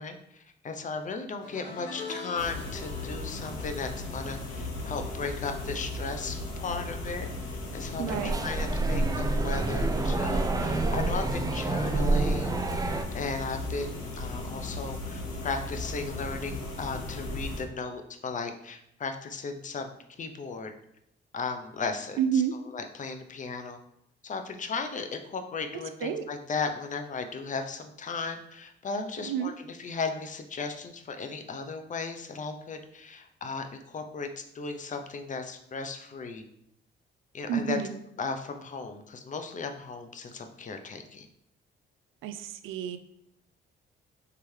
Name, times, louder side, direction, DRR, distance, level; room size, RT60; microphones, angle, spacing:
voice 1, 0.0-12.5 13.1-20.7 21.3-22.4 22.7-23.8 24.2-36.4 37.3-37.8 38.2-41.3, left 4 dB, 40° left, 6 dB, 0.6 m, -36 dB
sound 1, 1.4-6.8 7.1-7.5 8.7-8.8, left 3 dB, 65° left, 1.3 m, -45 dB
sound 2, 2.4-17.6, left 2 dB, 85° left, 1.1 m, -37 dB
voice 2, 8.0-8.4 22.2-22.5 26.0-26.2 29.2-29.5 37.5-37.9 42.2-43.0, right 8 dB, 85° right, 10 dB, 0.4 m, -29 dB
sound 3, 8.1-13.1, right 2 dB, 20° right, 0.4 m, -28 dB
4.7 x 3.3 x 3.2 m, 0.75 s
cardioid pair, 90°, 20 cm